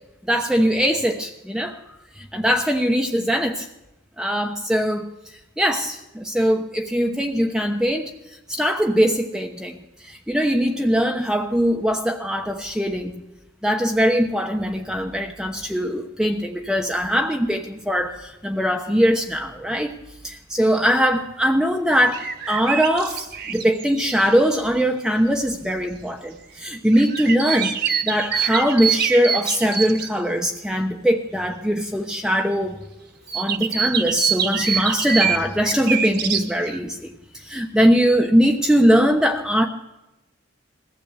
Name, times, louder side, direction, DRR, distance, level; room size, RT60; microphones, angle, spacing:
voice 1, 0.3-1.8 2.2-3.7 4.2-5.1 5.6-8.1 8.5-9.8 10.0-13.2 13.6-19.9 20.2-32.8 33.3-39.7, equal, 5° right, 2 dB, 1.0 m, -21 dB
sound 1, 21.9-24.5 26.9-30.1 33.3-36.8, right 7 dB, 50° right, 1.6 m, -25 dB
21.5 x 15.5 x 8.2 m, 0.98 s
head